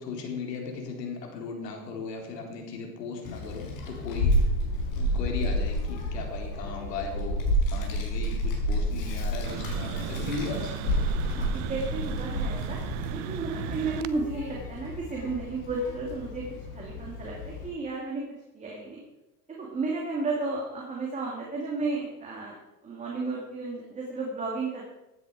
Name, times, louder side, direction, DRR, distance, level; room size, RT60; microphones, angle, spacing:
voice 1, 0.0-4.4 4.9-10.7, left 4 dB, 80° left, 1 dB, 4.1 m, -37 dB
Child speech kid speaking, 3.2-17.7, equal, 55° left, 5.0 m, -30 dB
sound 1, 9.4-14.1, right 14 dB, 35° right, 0.6 m, -36 dB
voice 2, 11.3-12.8 13.1-16.4 16.7-18.2 18.5-19.0 19.6-22.6 22.8-24.9, right 3 dB, 15° right, -3 dB, 2.5 m, -33 dB
15.0 x 10.0 x 4.9 m, 0.97 s
supercardioid pair, 140°, 48 cm